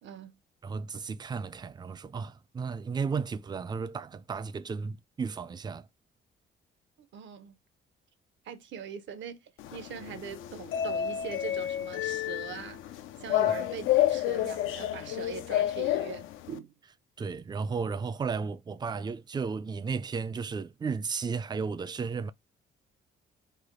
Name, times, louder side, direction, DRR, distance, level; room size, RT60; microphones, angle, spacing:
voice 1, 0.0-0.4 7.0-7.6 8.4-12.8 13.2-16.7, right 7 dB, 70° right, 0.8 m, -42 dB
voice 2, 0.6-5.9 17.2-22.3, right 5 dB, 20° right, 0.3 m, -34 dB
sound 1, 9.6-16.6, left 12 dB, 85° left, 0.5 m, -30 dB
3.3 x 2.1 x 3.6 m
cardioid pair, 90°, 20 cm